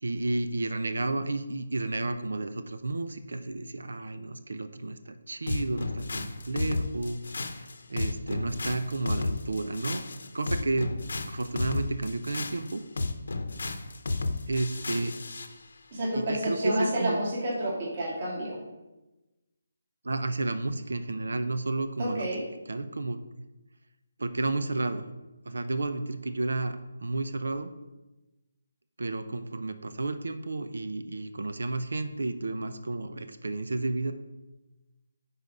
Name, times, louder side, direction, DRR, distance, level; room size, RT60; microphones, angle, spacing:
voice 1, 0.0-7.2 7.5-10.0 10.3-10.9 11.2-12.8 14.5-15.2 16.1-17.2 20.0-22.3 22.7-23.2 24.2-25.1 25.4-27.7 29.0-34.1, right 2 dB, 85° right, 9 dB, 0.7 m, -31 dB
sound 1, 5.5-15.5, left 3 dB, 65° left, 0.8 m, -33 dB
voice 2, 15.9-18.6 22.0-22.4, right 1 dB, 30° right, -4 dB, 2.2 m, -29 dB
10.0 x 4.1 x 5.3 m, 1.1 s
hypercardioid pair, 175°, 0 cm